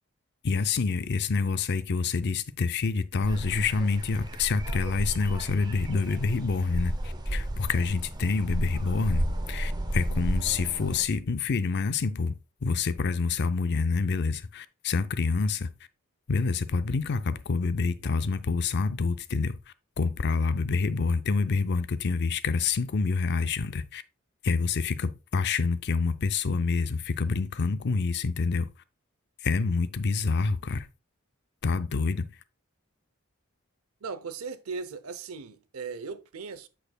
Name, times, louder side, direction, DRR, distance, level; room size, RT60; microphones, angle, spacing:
voice 1, 0.4-12.4 12.6-15.7 16.3-19.6 20.0-24.0 24.4-28.7 29.4-30.9 31.6-32.3, left 4 dB, 55° left, 0.5 m, -27 dB
sound 1, 3.2-11.0, right 1 dB, 20° right, 0.7 m, -33 dB
voice 2, 34.0-36.7, right 4 dB, 85° right, 0.6 m, -38 dB
7.9 x 6.4 x 2.3 m
head